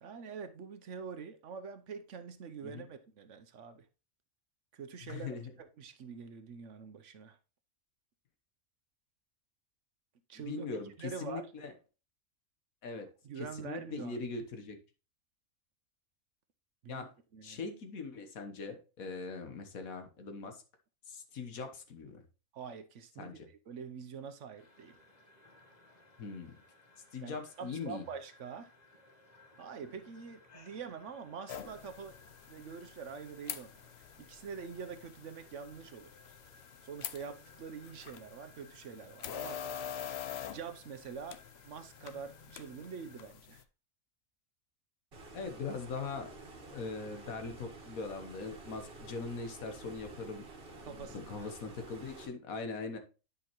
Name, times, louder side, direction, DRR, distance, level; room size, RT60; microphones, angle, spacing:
voice 1, 0.0-3.9 4.7-5.3 5.6-7.4 10.3-11.5 13.2-14.2 16.8-17.6 22.5-25.0 27.2-28.7 29.6-32.1 32.5-33.7 34.2-36.1 36.8-39.6 40.5-41.4 41.6-43.6 50.8-51.5, right 6 dB, 60° right, 1.0 m, -45 dB
voice 2, 5.0-5.5 10.4-11.7 12.8-13.1 13.4-14.8 16.9-17.1 17.4-20.6 21.1-22.2 23.2-23.5 26.2-26.5 27.1-28.1 45.3-46.3 46.7-50.5 50.8-53.0, left 4 dB, 75° left, 1.6 m, -41 dB
sound 1, 24.6-43.3, left 2 dB, 30° left, 1.2 m, -61 dB
sound 2, 31.5-43.6, left 9 dB, 60° left, 0.7 m, -46 dB
Stream, 45.1-52.3, right 2 dB, 40° right, 1.5 m, -50 dB
9.9 x 5.4 x 3.0 m
omnidirectional pair, 1.5 m